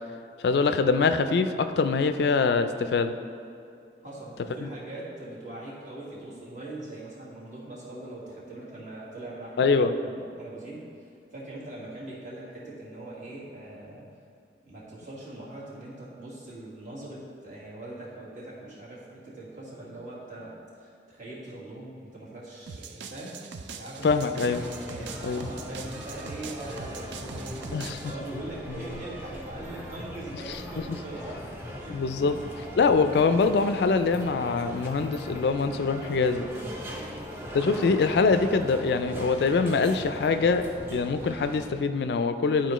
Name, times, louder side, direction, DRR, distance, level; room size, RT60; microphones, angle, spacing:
voice 1, 0.4-3.1 9.6-9.9 24.0-24.6 25.2-25.5 27.7-28.0 30.5-30.6 31.9-32.4 32.8-36.4 37.5-42.7, left 4 dB, 70° left, 9 dB, 0.3 m, -24 dB
voice 2, 4.0-14.1 14.6-23.4 23.7-24.5 24.9-31.4 31.8-31.9 32.2-32.3 36.9-37.3, right 1 dB, 45° right, -7 dB, 1.7 m, -41 dB
sound 1, 22.7-28.1, right 5 dB, 90° right, 0.4 m, -42 dB
sound 2, 24.4-41.7, equal, 15° right, 0.7 m, -40 dB
11.0 x 4.3 x 3.0 m, 2.5 s
head